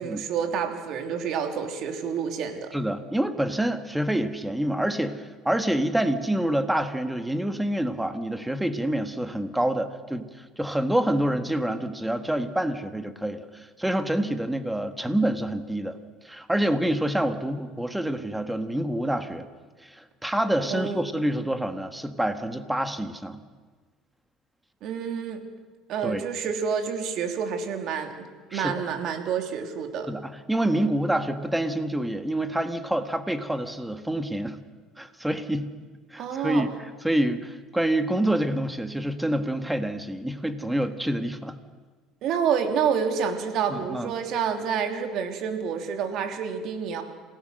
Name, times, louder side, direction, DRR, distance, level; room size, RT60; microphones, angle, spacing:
voice 1, 0.0-2.7 20.6-21.0 24.8-25.4 25.9-30.1 36.2-36.7 42.2-47.0, right 7 dB, 55° right, 5 dB, 3.0 m, -28 dB
voice 2, 2.7-16.0 16.2-19.5 19.8-23.4 26.0-26.2 28.5-28.7 30.1-34.6 35.0-35.7 36.1-36.7 37.0-41.6 43.7-44.1, right 1 dB, 5° right, 9 dB, 1.5 m, -27 dB
27.5 x 17.0 x 6.5 m, 1.5 s
cardioid pair, 120°, 0 cm